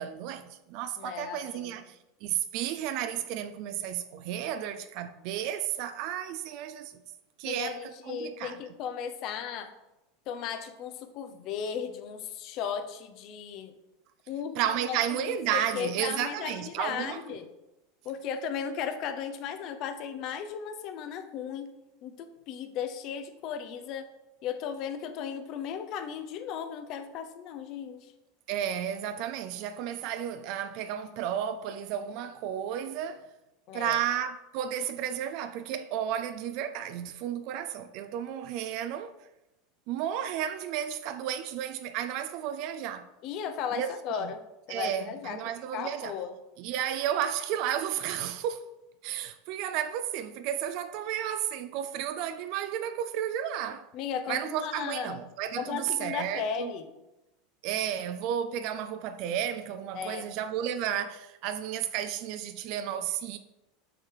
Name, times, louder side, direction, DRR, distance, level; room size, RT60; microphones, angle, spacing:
voice 1, 0.0-6.9 7.4-8.6 14.6-17.4 28.5-33.3 33.7-39.1 39.9-43.1 43.8-44.3 44.7-46.1 46.6-48.7 49.0-53.9 54.3-56.7 57.6-63.4, right 10 dB, 55° right, 0.5 m, -33 dB
voice 2, 1.0-1.8 7.4-9.7 10.3-13.7 14.3-14.6 14.9-17.5 18.0-21.7 22.0-24.1 24.4-28.1 33.7-34.0 43.2-44.4 44.7-46.3 53.9-55.2 55.6-56.9 59.9-60.3, left 7 dB, 50° left, 0.9 m, -36 dB
7.8 x 4.8 x 4.7 m
hypercardioid pair, 85°, 0 cm